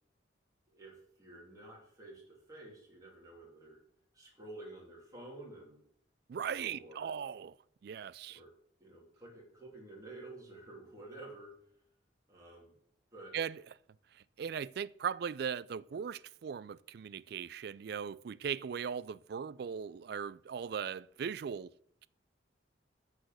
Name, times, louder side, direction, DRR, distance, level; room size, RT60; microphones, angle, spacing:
voice 1, 0.7-3.8 4.1-5.8 6.4-7.1 8.3-8.5 8.8-11.5 12.3-12.7 13.1-13.3, right 2 dB, 20° right, 2.8 m, -51 dB
voice 2, 6.3-7.6 7.8-8.4 13.3-13.6 14.1-21.7, right 7 dB, 55° right, 0.3 m, -39 dB
10.0 x 5.0 x 7.7 m
head